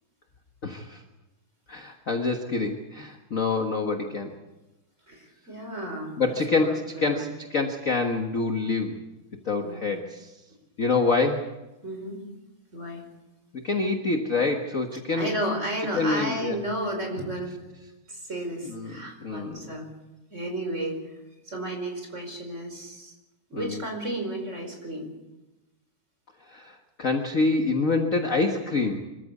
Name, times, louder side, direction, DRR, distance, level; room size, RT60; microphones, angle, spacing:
voice 1, 0.6-1.0 1.7-4.3 6.2-9.0 9.4-10.3 10.8-11.5 13.5-15.3 15.9-16.6 18.7-19.7 23.5-23.8 26.5-29.0, left 3 dB, 40° left, 4 dB, 1.1 m, -26 dB
voice 2, 5.1-7.2 9.6-9.8 11.8-12.2 12.7-13.1 15.2-17.6 18.1-19.9 20.3-21.1 21.5-23.1 23.5-25.1, right 1 dB, 20° right, 3 dB, 5.1 m, -33 dB
26.0 x 14.5 x 8.3 m, 1.1 s
omnidirectional pair, 3.4 m